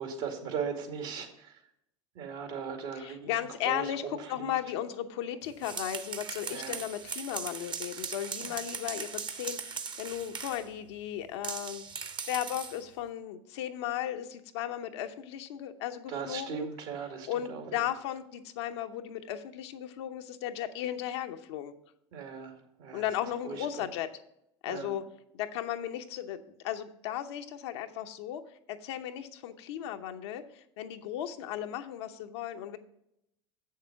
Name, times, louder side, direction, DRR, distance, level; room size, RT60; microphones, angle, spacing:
voice 1, 0.0-1.6 2.1-3.3 3.6-4.5 6.5-6.8 8.4-8.5 16.1-17.8 22.1-23.0 23.4-23.7 24.7-24.9, right 6 dB, 70° right, 3 dB, 2.3 m, -38 dB
voice 2, 3.0-11.8 12.3-16.7 17.3-21.7 22.9-24.1 24.6-25.0 25.3-28.4 28.7-32.8, left 11 dB, 75° left, 6 dB, 0.8 m, -36 dB
sound 1, 5.4-10.7 11.4-12.8, right 5 dB, 35° right, 0.9 m, -39 dB
7.5 x 6.6 x 5.8 m, 0.78 s
hypercardioid pair, 85°, 14 cm